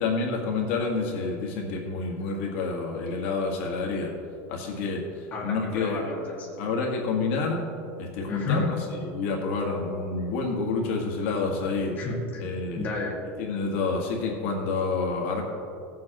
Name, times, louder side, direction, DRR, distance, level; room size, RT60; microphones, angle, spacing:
voice 1, 0.0-4.1 4.5-6.0 6.6-7.6 8.0-8.8 9.0-11.9 12.4-12.8 13.4-15.4, left 4 dB, 70° left, 0 dB, 1.7 m, -28 dB
voice 2, 5.3-6.5 8.3-8.7 12.0-12.4 12.8-13.2 15.4-15.5, left 3 dB, 25° left, -4 dB, 1.9 m, -31 dB
17.0 x 7.6 x 3.0 m, 2.6 s
cardioid pair, 165°, 7 cm